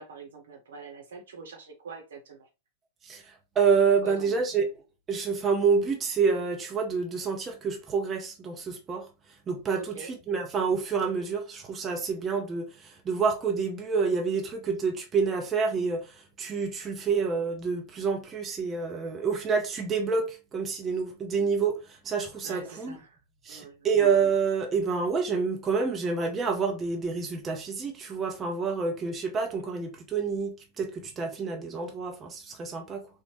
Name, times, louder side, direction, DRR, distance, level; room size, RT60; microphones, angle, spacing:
voice 1, 0.0-2.5 4.0-4.6 9.8-10.1 22.4-23.2 23.5-23.9, right 4 dB, 65° right, 0.9 m, -44 dB
voice 2, 3.0-4.7 5.1-9.1 9.5-23.0 23.4-33.1, right 5 dB, 20° right, 0.6 m, -28 dB
3.9 x 2.1 x 3.0 m
figure-of-eight pair, 90°, 0 cm